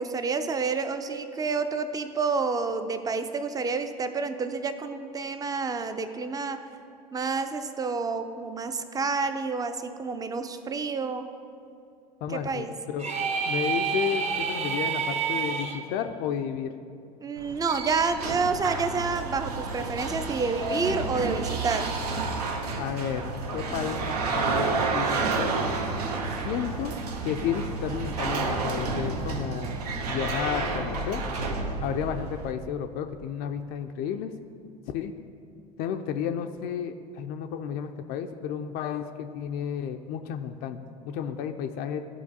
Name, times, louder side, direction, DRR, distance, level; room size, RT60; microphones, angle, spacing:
voice 1, 0.0-6.7 7.1-11.3 12.3-12.7 17.2-21.9, right 4 dB, 20° right, 9 dB, 0.5 m, -29 dB
voice 2, 12.2-16.7 22.7-25.5 26.4-27.0 27.2-29.8 30.1-31.2 31.8-34.3 34.9-35.1 35.8-42.0, left 8 dB, 50° left, 6 dB, 0.4 m, -32 dB
sound 1, 13.0-15.8, right 6 dB, 35° right, 0.9 m, -28 dB
sound 2, 17.4-32.5, right 3 dB, 75° right, 0.7 m, -30 dB
12.5 x 4.4 x 2.8 m, 2.4 s
hypercardioid pair, 70°, 20 cm